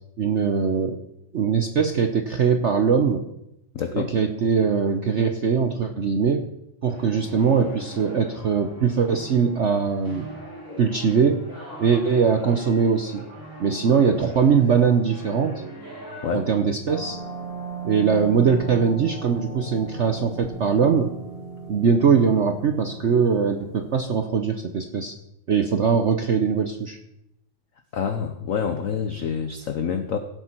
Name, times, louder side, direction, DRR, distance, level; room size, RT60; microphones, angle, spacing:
voice 1, 0.2-1.0 1.3-3.3 3.9-6.5 6.8-10.3 10.8-11.5 11.8-13.2 13.6-15.6 16.3-17.2 17.8-21.1 21.7-25.2 25.5-27.0, right 6 dB, 70° right, 5 dB, 0.6 m, -21 dB
voice 2, 3.7-4.1 10.7-10.8 16.2-16.5 27.9-30.2, left 7 dB, 60° left, 8 dB, 0.8 m, -27 dB
sound 1, 6.8-16.3, equal, 10° left, 3.3 m, -41 dB
sound 2, 16.9-24.0, right 3 dB, 30° left, 2.0 m, -37 dB
16.5 x 8.2 x 4.5 m, 0.83 s
omnidirectional pair, 2.3 m